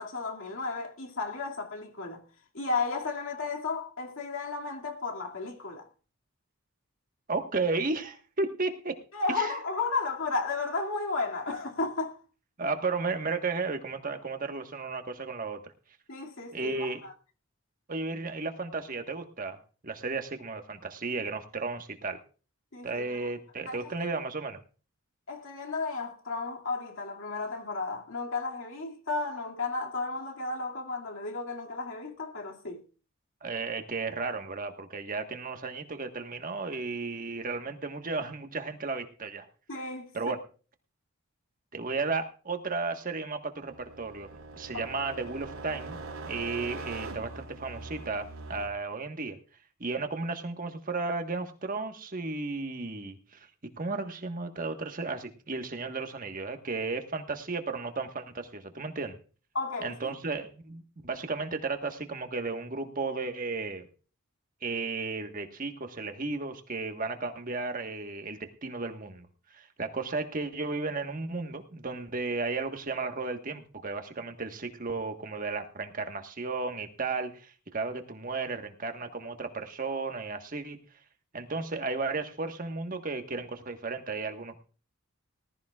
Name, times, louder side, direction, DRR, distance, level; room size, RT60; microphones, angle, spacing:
voice 1, 0.0-2.2 2.5-5.8 9.1-12.2 16.1-17.1 22.7-23.3 23.7-23.8 25.3-32.8 39.7-40.1 44.7-44.9 59.5-60.1, left 3 dB, 65° left, 2.3 m, -33 dB
voice 2, 7.3-9.0 9.3-9.5 12.6-15.6 16.5-17.0 17.9-19.6 19.8-22.2 22.8-24.6 33.4-39.5 40.1-40.4 41.7-44.3 44.6-46.0 46.3-49.4 49.8-53.5 53.8-59.2 59.8-63.8 64.6-69.3 69.5-80.8 81.3-84.6, right 3 dB, 40° right, 1.4 m, -34 dB
sound 1, 43.6-48.7, right 3 dB, 85° right, 3.8 m, -42 dB
19.5 x 13.5 x 2.4 m
head